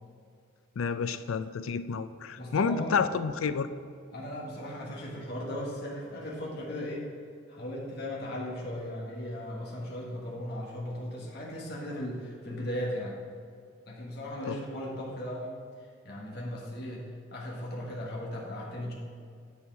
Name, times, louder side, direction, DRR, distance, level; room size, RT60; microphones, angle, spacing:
voice 1, 0.8-3.7 14.5-14.6, left 5 dB, 90° left, 12 dB, 0.4 m, -30 dB
voice 2, 2.4-3.0 4.1-7.1 7.5-13.2 13.9-15.5 16.0-18.9, left 1 dB, 50° left, -4 dB, 1.5 m, -37 dB
9.6 x 5.4 x 4.6 m, 2.3 s
head